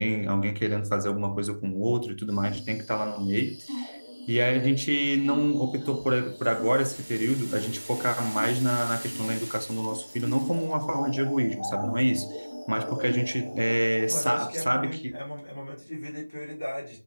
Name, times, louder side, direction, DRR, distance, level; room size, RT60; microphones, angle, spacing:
voice 1, 0.0-4.0 4.3-15.2, equal, 90° right, 0.4 m, -27 dB
sound 1, 2.3-14.5, equal, 70° left, 0.8 m, -39 dB
sound 2, 5.7-10.8, right 1 dB, 45° right, 0.6 m, -43 dB
voice 2, 14.0-17.0, equal, 40° left, 1.4 m, -36 dB
2.7 x 2.5 x 2.9 m
figure-of-eight pair, 175°, 0 cm